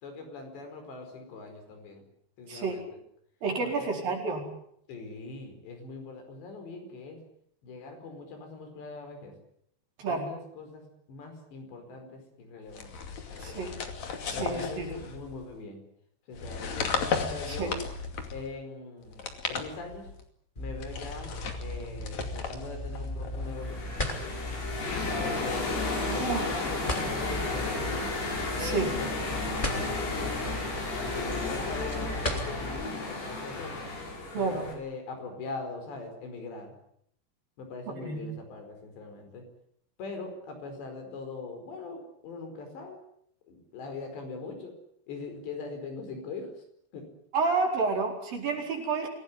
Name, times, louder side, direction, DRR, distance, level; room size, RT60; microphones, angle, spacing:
voice 1, 0.0-2.0 2.4-2.9 3.6-4.1 4.9-7.2 7.6-9.3 10.1-13.0 13.5-13.7 14.3-15.8 16.3-16.9 17.3-17.8 18.3-20.1 20.6-21.3 21.6-24.7 25.2-28.0 28.6-30.5 31.0-33.9 34.3-36.7 37.6-39.5 40.0-43.0 43.5-44.7 45.1-46.6 46.9-47.0, left 3 dB, 85° left, 5 dB, 7.1 m, -41 dB
voice 2, 3.4-4.4 10.0-10.3 13.4-13.7 14.3-14.9 17.5-17.7 26.1-26.5 28.6-28.9 34.3-34.6 38.0-38.2 47.3-49.1, right 4 dB, 55° right, 2 dB, 6.2 m, -30 dB
sound 1, 12.7-15.5 16.3-18.5 19.1-20.2 20.8-23.6, left 5 dB, 45° left, 3.4 m, -35 dB
sound 2, 20.5-32.8, left 1 dB, 10° left, 3.1 m, -37 dB
sound 3, 23.4-34.7, left 3 dB, 65° left, 7.3 m, -33 dB
26.5 x 18.0 x 9.8 m, 0.72 s
omnidirectional pair, 4.9 m